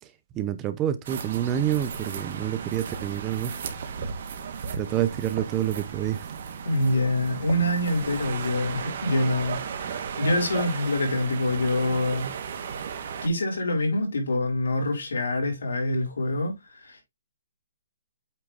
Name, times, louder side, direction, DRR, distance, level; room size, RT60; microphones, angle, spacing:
voice 1, 0.0-3.5 4.7-6.3, right 11 dB, 15° right, 0.6 m, -28 dB
sound 1, 1.1-13.3, right 6 dB, 45° right, 1.3 m, -35 dB
voice 2, 6.6-12.3 13.2-17.0, left 1 dB, 85° left, 4.4 m, -26 dB
8.4 x 3.6 x 3.5 m
hypercardioid pair, 170°, 0 cm